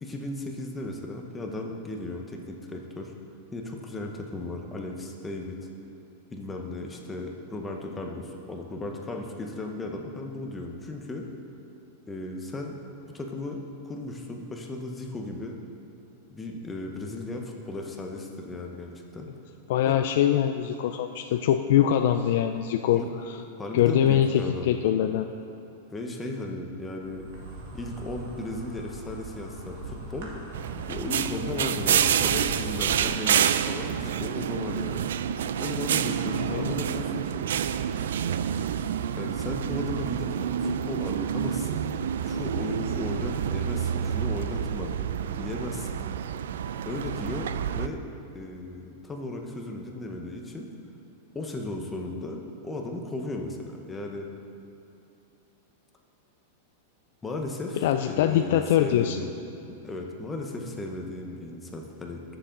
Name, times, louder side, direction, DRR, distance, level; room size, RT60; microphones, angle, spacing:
voice 1, 0.0-3.1 3.5-5.6 6.3-11.3 12.1-12.8 13.1-15.6 16.3-19.3 19.8-20.0 22.9-23.1 23.6-24.9 25.9-27.3 27.7-30.3 30.9-35.1 35.6-37.4 39.2-41.8 42.2-44.9 45.3-46.0 46.9-48.0 48.3-50.7 51.3-54.3 57.2-59.4 59.7-62.4, left 2 dB, 10° left, 1 dB, 0.8 m, -36 dB
voice 2, 19.7-23.4 23.7-25.3 36.3-36.8 57.8-59.2, left 10 dB, 50° left, 6 dB, 0.3 m, -23 dB
Insect, 27.0-33.0, right 2 dB, 55° right, 2.1 m, -41 dB
sound 1, 30.5-47.9, right 9 dB, 85° right, 0.4 m, -28 dB
19.0 x 6.9 x 3.8 m, 2.8 s
supercardioid pair, 175°, 0 cm